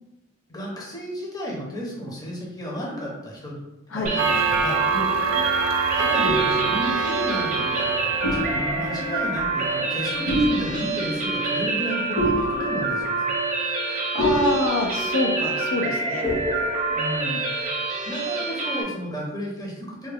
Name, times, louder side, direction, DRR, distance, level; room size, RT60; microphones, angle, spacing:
voice 1, 0.5-3.6 3.9-4.8 5.9-13.3 16.9-17.4 18.1-20.1, equal, 20° left, -3 dB, 0.7 m, -33 dB
sound 1, 4.0-18.8, right 3 dB, 40° right, 0.7 m, -27 dB
Clock, 4.2-10.1, right 5 dB, 85° right, 0.4 m, -26 dB
sound 2, 5.6-5.7 6.2-7.9 8.2-17.8, equal, 50° left, 1.2 m, -30 dB
voice 2, 13.9-16.3, left 2 dB, 80° left, 1 dB, 0.6 m, -26 dB
3.4 x 2.2 x 3.4 m, 0.95 s
head